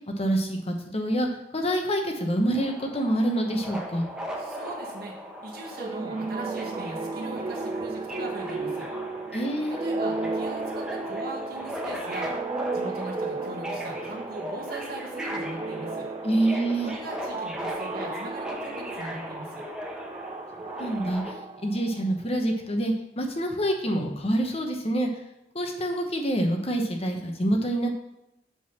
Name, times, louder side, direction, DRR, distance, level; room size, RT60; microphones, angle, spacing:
voice 1, 0.2-1.3 1.5-4.1 9.3-9.8 16.2-16.9 20.8-21.2 21.6-25.1 25.5-27.9, right 1 dB, 35° left, 3 dB, 1.0 m, -26 dB
Subway metro underground, 2.5-21.3, equal, 5° right, 0.9 m, -38 dB
voice 2, 4.4-5.1 5.4-8.9 9.7-12.3 12.7-16.1 16.8-19.6, right 2 dB, 60° right, -2 dB, 1.6 m, -40 dB
sound 1, 5.8-22.2, right 3 dB, 25° right, 0.4 m, -34 dB
7.7 x 3.9 x 5.7 m, 0.88 s
head